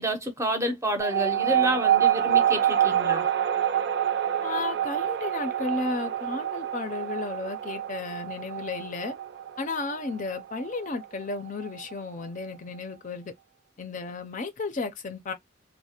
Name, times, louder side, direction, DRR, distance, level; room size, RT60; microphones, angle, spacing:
voice 1, 0.0-3.3, equal, 15° right, 0.6 m, -29 dB
sound 1, 1.0-11.9, right 10 dB, 60° right, 0.4 m, -27 dB
voice 2, 4.4-9.2 9.6-13.3 13.8-15.3, left 3 dB, 45° left, 0.5 m, -33 dB
3.2 x 2.1 x 2.8 m
head